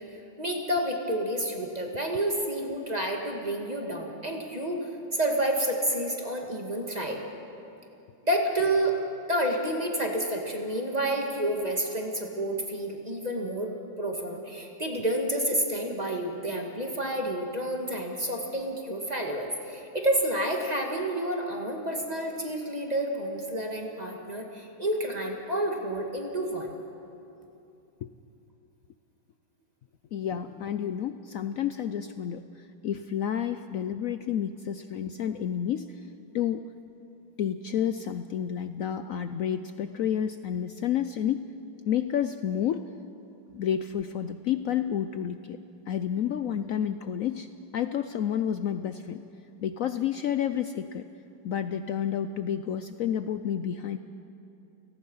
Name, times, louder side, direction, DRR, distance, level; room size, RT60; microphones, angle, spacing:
voice 1, 0.1-7.2 8.2-9.0 9.3-13.7 14.0-26.7, right 1 dB, 20° right, 1 dB, 2.2 m, -29 dB
voice 2, 30.1-36.1 36.3-36.7 37.4-41.5 41.9-42.9 43.5-45.6 45.9-47.5 47.7-49.2 49.6-51.1 51.4-54.0, left 9 dB, 80° left, 10 dB, 0.7 m, -30 dB
29.5 x 18.5 x 5.6 m, 2.8 s
omnidirectional pair, 2.1 m